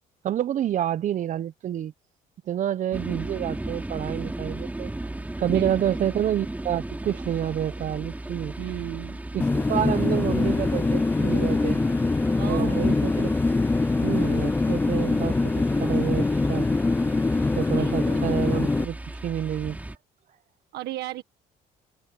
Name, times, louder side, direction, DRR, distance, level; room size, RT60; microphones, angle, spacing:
voice 1, 0.2-1.9 2.5-4.9 5.4-8.5 9.3-11.8 12.5-13.3 14.0-16.7 17.6-19.8, right 10 dB, 50° right, 0.6 m, -28 dB
sound 1, 2.9-20.0, right 1 dB, 10° right, 4.1 m, -36 dB
voice 2, 5.5-6.0 8.6-9.2 12.4-12.8 17.7-18.3 20.7-21.2, right 15 dB, 80° right, 1.5 m, -35 dB
sound 2, 9.4-18.8, left 3 dB, 10° left, 0.4 m, -23 dB
cardioid pair, 110°, 17 cm